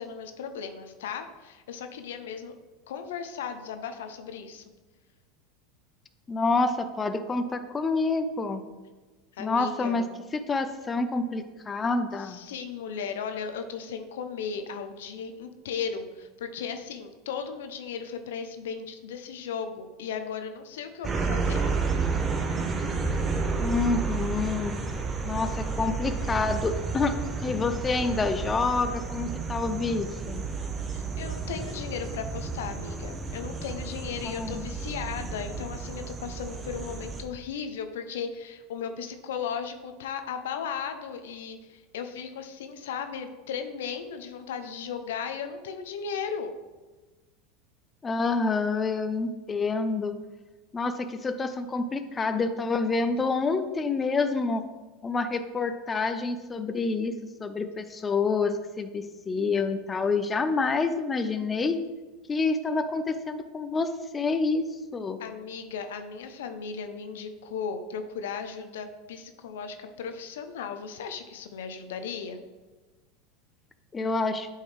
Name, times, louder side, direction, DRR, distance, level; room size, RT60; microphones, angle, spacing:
voice 1, 0.0-2.6 2.9-4.6 9.3-10.0 12.2-21.6 30.9-46.5 65.2-72.4, left 6 dB, 80° left, 7 dB, 0.6 m, -36 dB
voice 2, 6.3-8.6 9.4-10.1 10.3-12.4 23.6-24.8 25.2-27.2 27.4-30.5 34.2-34.7 48.0-50.2 50.7-54.6 55.0-61.8 62.3-65.2 73.9-74.5, left 4 dB, 20° left, 9 dB, 0.5 m, -28 dB
sound 1, 21.0-37.2, right 4 dB, 25° right, 0.9 m, -31 dB
8.0 x 4.5 x 3.3 m, 1.2 s
hypercardioid pair, 100°, 0 cm